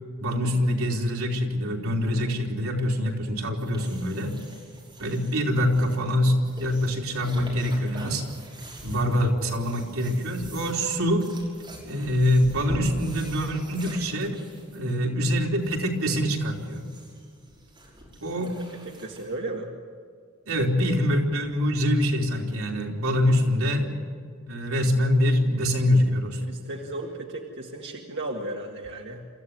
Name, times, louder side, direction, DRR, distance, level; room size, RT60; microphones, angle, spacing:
voice 1, 0.2-4.4 5.0-8.2 8.8-11.3 11.8-14.4 14.7-16.8 18.2-18.5 20.5-23.9 24.5-26.5, equal, 85° right, 0 dB, 3.5 m, -24 dB
sound 1, 3.6-19.3, equal, 25° right, 6.0 m, -43 dB
voice 2, 18.9-19.7 26.4-29.3, right 2 dB, 55° right, 0 dB, 1.9 m, -35 dB
27.0 x 14.5 x 9.6 m, 2.1 s
head